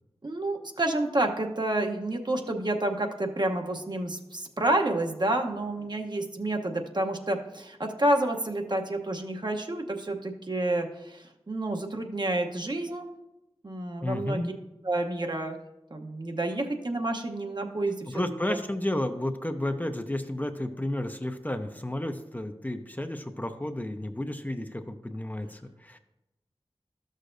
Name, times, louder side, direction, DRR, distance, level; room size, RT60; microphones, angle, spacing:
voice 1, 0.2-13.1 13.6-14.5 14.8-15.6 15.9-18.1 18.5-18.6, right 1 dB, 45° right, 3 dB, 0.9 m, -29 dB
voice 2, 14.0-14.5 18.1-26.0, left 1 dB, 15° left, 6 dB, 0.6 m, -32 dB
12.5 x 6.5 x 2.6 m, 0.94 s
cardioid pair, 40°, 10 cm